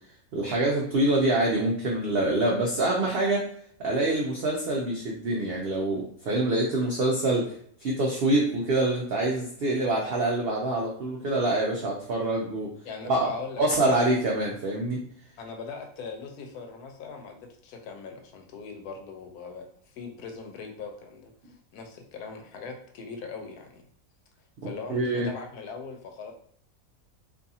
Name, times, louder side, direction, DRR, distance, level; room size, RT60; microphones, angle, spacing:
voice 1, 0.3-3.5 3.8-7.6 7.8-12.7 13.0-13.3 13.6-15.0 24.9-25.3, right 2 dB, 70° right, -2 dB, 0.5 m, -25 dB
voice 2, 12.8-13.6 15.4-23.8 24.6-26.3, left 4 dB, 85° left, 4 dB, 1.1 m, -40 dB
2.6 x 2.4 x 2.7 m, 0.62 s
omnidirectional pair, 1.5 m